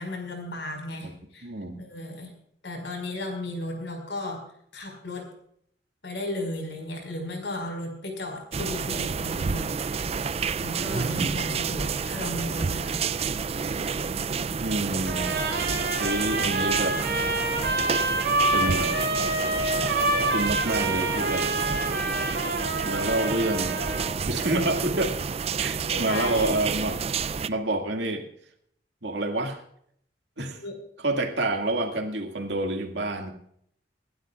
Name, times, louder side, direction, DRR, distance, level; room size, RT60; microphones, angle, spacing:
voice 1, 0.0-1.5 1.8-2.3 2.6-4.4 4.7-5.3 6.0-9.7 10.6-13.0 24.5-24.7 25.8-26.7 30.6-30.8, left 1 dB, 80° left, 4 dB, 5.1 m, -35 dB
voice 2, 1.4-1.8 14.6-15.3 16.0-17.0 18.5-18.9 20.3-21.5 22.8-23.8 24.3-25.2 25.6-27.0 27.5-28.3 29.0-29.6 30.4-30.6 31.0-33.3, right 2 dB, 75° right, 4 dB, 2.1 m, -28 dB
sound 1, 8.5-27.5, right 5 dB, 35° right, 0.4 m, -29 dB
Trumpet, 15.1-24.2, right 2 dB, 55° right, 6.2 m, -27 dB
26.0 x 12.0 x 2.4 m, 0.68 s
head